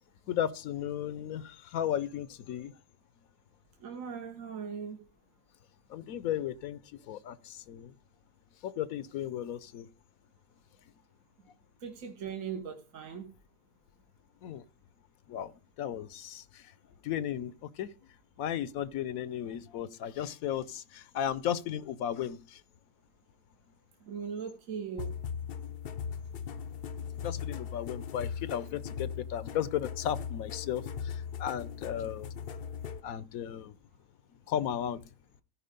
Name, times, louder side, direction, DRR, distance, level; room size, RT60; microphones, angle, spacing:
voice 1, 0.3-2.7 5.9-6.8 7.1-7.9 8.6-9.9 14.4-14.6 15.3-15.5 15.8-16.6 17.0-17.9 18.4-22.6 27.2-32.3 33.0-33.7 34.5-35.0, left 10 dB, 80° left, 1.1 m, -35 dB
voice 2, 3.8-5.0 11.8-13.3 24.0-25.2, right 7 dB, 70° right, 1.6 m, -39 dB
sound 1, 25.0-33.0, left 7 dB, 55° left, 0.7 m, -39 dB
14.5 x 5.0 x 5.2 m
omnidirectional pair, 1.5 m